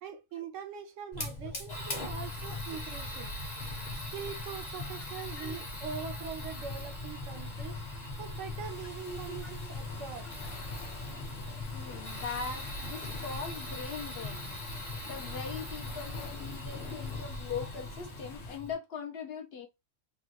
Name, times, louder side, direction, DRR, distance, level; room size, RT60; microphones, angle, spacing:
voice 1, 0.0-3.3 3.9-7.8 8.2-10.3, right 7 dB, 75° right, 1.0 m, -42 dB
Fire, 1.1-18.7, left 2 dB, 35° left, 1.0 m, -40 dB
sound 1, 6.6-18.6, left 6 dB, 75° left, 1.1 m, -50 dB
voice 2, 9.0-9.7 11.7-14.5 15.1-19.7, left 5 dB, 60° left, 0.8 m, -41 dB
3.6 x 2.3 x 2.8 m
omnidirectional pair, 1.3 m